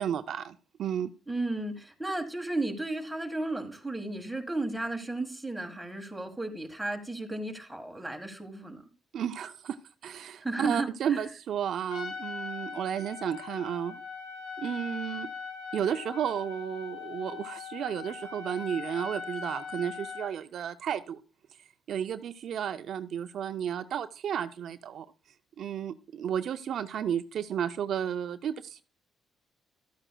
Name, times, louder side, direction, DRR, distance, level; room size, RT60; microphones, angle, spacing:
voice 1, 0.0-1.1 9.1-9.8 10.0-14.0 14.6-15.3 15.7-21.2 21.9-25.1 25.6-28.8, right 9 dB, 70° right, 10 dB, 0.4 m, -33 dB
voice 2, 1.3-8.8 10.4-11.3, right 2 dB, 5° right, 4 dB, 1.4 m, -34 dB
Trumpet, 11.9-20.3, left 5 dB, 85° left, 1.5 m, -40 dB
12.0 x 8.9 x 2.2 m, 0.33 s
cardioid pair, 90°, 0 cm